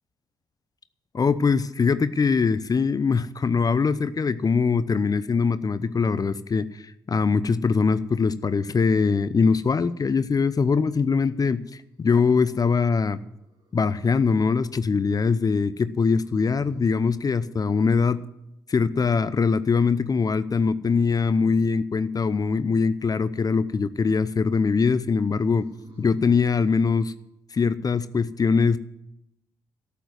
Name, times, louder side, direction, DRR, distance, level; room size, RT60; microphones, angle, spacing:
voice 1, 1.1-13.2 13.7-18.2 18.7-25.7 26.0-27.1 27.5-28.8, left 5 dB, 35° left, 15 dB, 0.7 m, -22 dB
sound 1, 13.3-14.0 16.0-17.0 20.8-21.8 25.2-26.4, right 2 dB, 50° right, 4.1 m, -48 dB
13.0 x 7.2 x 9.4 m, 0.85 s
hypercardioid pair, 40°, 11 cm